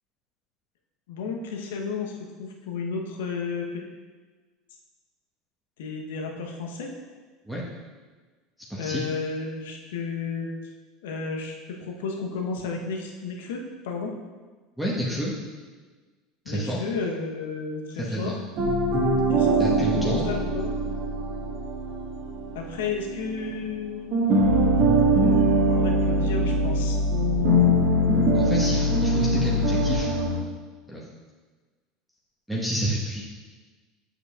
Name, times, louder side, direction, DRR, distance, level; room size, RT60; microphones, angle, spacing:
voice 1, 1.1-3.8 5.8-6.9 8.8-10.5 11.0-14.1 16.4-18.4 19.3-20.8 22.5-24.4 25.7-27.0, left 4 dB, 70° left, 1 dB, 1.0 m, -32 dB
voice 2, 8.7-9.0 14.8-15.3 16.4-16.8 18.0-18.4 19.6-20.3 28.3-30.1 30.9-31.0 32.5-33.2, right 1 dB, ahead, -5 dB, 1.4 m, -29 dB
sound 1, 18.6-23.8 24.1-30.4, equal, 50° right, 1.7 m, -22 dB
8.3 x 7.2 x 2.5 m, 1.4 s
hypercardioid pair, 75°, 0 cm